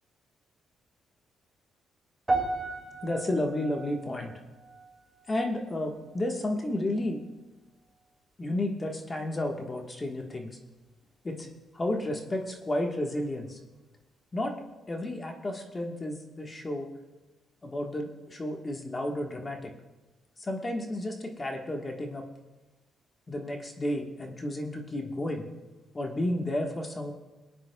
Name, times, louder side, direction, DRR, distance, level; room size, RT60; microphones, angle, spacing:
sound 1, 2.3-6.7 6.9-7.3 8.0-8.1, right 2 dB, 15° right, 2.4 m, -36 dB
voice 1, 3.0-4.3 5.3-7.2 8.4-10.6 11.2-11.5 11.7-13.6 14.3-14.5 14.9-16.9 17.6-19.7 20.4-22.2 23.3-25.4 25.9-27.1, left 1 dB, 25° left, 2 dB, 1.4 m, -32 dB
24.0 x 9.4 x 2.3 m, 1.1 s
cardioid pair, 90°, 0 cm